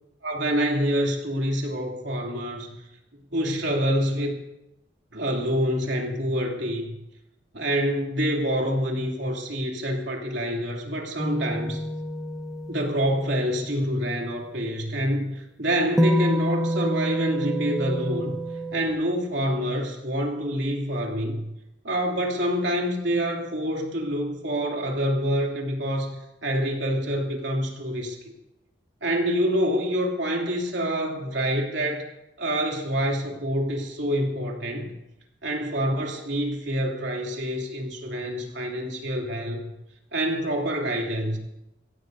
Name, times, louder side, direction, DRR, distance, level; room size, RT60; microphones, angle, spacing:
voice 1, 0.2-2.8 3.3-4.4 5.1-7.0 7.5-11.8 12.7-18.4 18.7-21.5 21.8-28.2 29.0-32.0 32.4-34.9 35.4-39.7 40.1-41.4, equal, 70° right, 0 dB, 3.0 m, -26 dB
sound 1, 11.2-13.5 16.0-18.9, equal, ahead, 1.0 m, -27 dB
24.0 x 15.5 x 2.7 m, 0.91 s
head